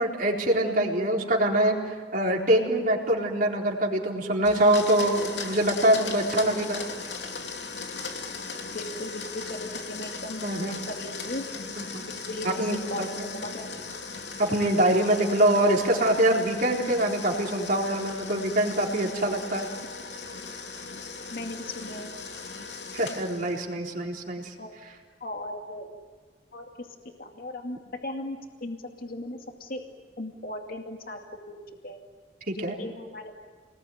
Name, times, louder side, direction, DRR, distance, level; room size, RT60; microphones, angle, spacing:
voice 1, 0.0-1.7 2.1-6.8 10.4-10.7 11.8-11.9 12.4-13.3 14.4-19.7 22.9-24.5 32.5-32.7, right 1 dB, 50° right, 0 dB, 4.1 m, -24 dB
Domestic sounds home sounds, 4.4-23.7, left 4 dB, 90° left, 2.9 m, -38 dB
voice 2, 8.7-11.5 12.0-13.7 19.7-19.9 21.3-22.1 24.6-24.7 25.2-25.9 26.5-27.8 28.0-29.8 30.2-32.0 32.5-33.3, left 1 dB, 55° left, 3 dB, 2.4 m, -37 dB
29.0 x 21.0 x 9.6 m, 1.5 s
head